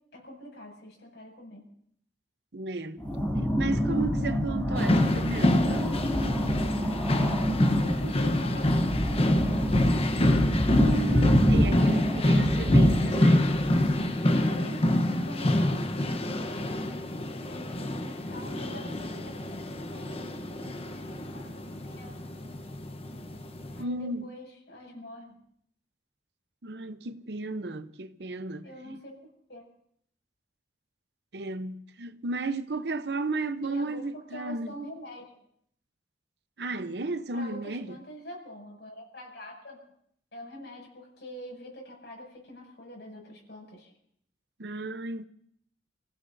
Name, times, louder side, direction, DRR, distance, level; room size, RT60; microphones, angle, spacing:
voice 1, 0.1-1.7 7.8-9.8 14.4-14.9 15.2-16.1 16.5-22.6 23.7-25.4 28.6-29.2 29.5-29.7 33.6-35.4 37.3-39.8 40.3-43.9, equal, 75° left, 6.9 m, -45 dB
voice 2, 2.5-3.1 3.3-6.0 10.7-13.6 23.8-24.3 26.6-29.0 31.3-34.8 36.6-38.0 44.6-45.3, right 2 dB, 70° right, 0.8 m, -34 dB
sound 1, 3.0-13.9, equal, 15° left, 2.8 m, -27 dB
sound 2, 4.8-23.8, left 1 dB, 35° left, 1.0 m, -26 dB
29.5 x 16.5 x 2.7 m
head